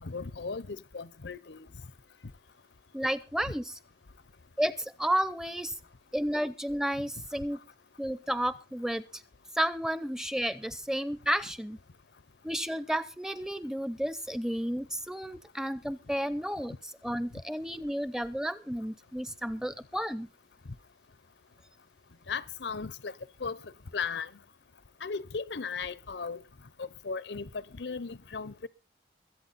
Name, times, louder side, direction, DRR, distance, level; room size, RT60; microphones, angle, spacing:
voice 1, 0.0-1.7 3.5-3.6 22.3-23.1 23.4-24.3 25.0-26.4 26.8-28.7, left 5 dB, 75° left, 0.8 m, -36 dB
voice 2, 2.9-3.6 4.6-5.7 6.1-7.6 8.0-9.2 9.5-11.8 12.4-16.7 17.0-20.3, equal, 5° right, 0.6 m, -32 dB
22.0 x 8.6 x 4.1 m
head